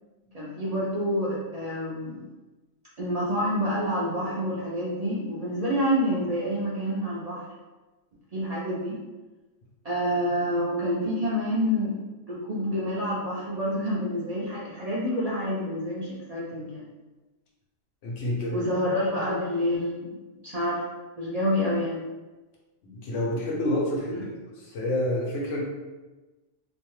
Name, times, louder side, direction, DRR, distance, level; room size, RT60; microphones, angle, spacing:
voice 1, 0.3-2.2 3.0-7.4 8.3-9.0 9.8-12.0 12.3-16.9 18.5-20.8 21.2-22.0 24.1-24.2, equal, 55° right, -7 dB, 0.4 m, -28 dB
voice 2, 18.0-18.6 22.9-24.3 24.6-25.6, left 1 dB, 85° left, -3 dB, 1.1 m, -28 dB
2.5 x 2.2 x 3.1 m, 1.2 s
omnidirectional pair, 1.2 m